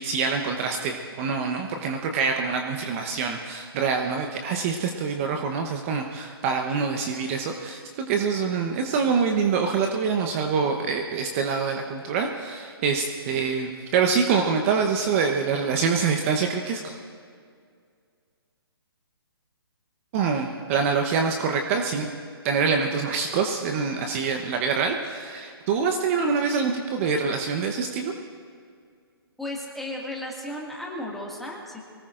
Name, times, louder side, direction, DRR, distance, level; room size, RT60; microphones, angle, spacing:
voice 1, 0.0-17.0 20.1-22.1 22.4-28.1, right 5 dB, 30° right, 3 dB, 1.0 m, -25 dB
voice 2, 29.4-31.8, left 1 dB, ahead, -3 dB, 2.1 m, -34 dB
23.5 x 18.5 x 2.6 m, 2.2 s
hypercardioid pair, 145°, 13 cm